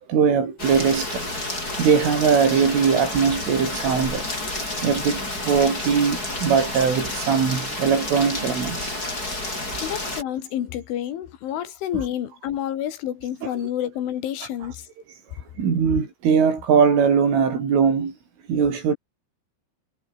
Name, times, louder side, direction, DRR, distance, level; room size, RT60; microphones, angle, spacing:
voice 1, 0.1-1.5 1.8-4.2 4.8-9.0 15.6-18.1 18.5-18.9, right 6 dB, 90° right, 8.2 m, -21 dB
Rain, 0.6-10.2, left 2 dB, 20° left, 8.3 m, -30 dB
voice 2, 9.8-14.9, left 11 dB, 80° left, 4.7 m, -29 dB
omnidirectional pair, 5.5 m